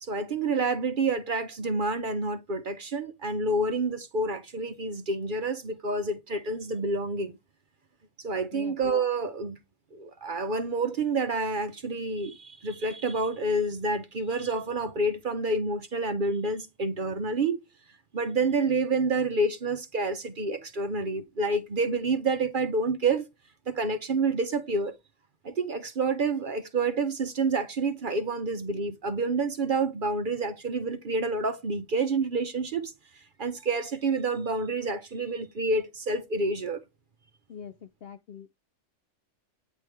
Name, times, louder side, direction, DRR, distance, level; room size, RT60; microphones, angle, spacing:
voice 1, 0.0-7.3 8.2-9.6 9.9-17.6 18.1-23.2 23.7-25.0 25.4-32.9 33.4-36.8, right 3 dB, 50° right, 0.8 m, -28 dB
voice 2, 37.5-38.6, left 7 dB, 60° left, 0.7 m, -44 dB
9.2 x 3.2 x 3.2 m
omnidirectional pair, 1.3 m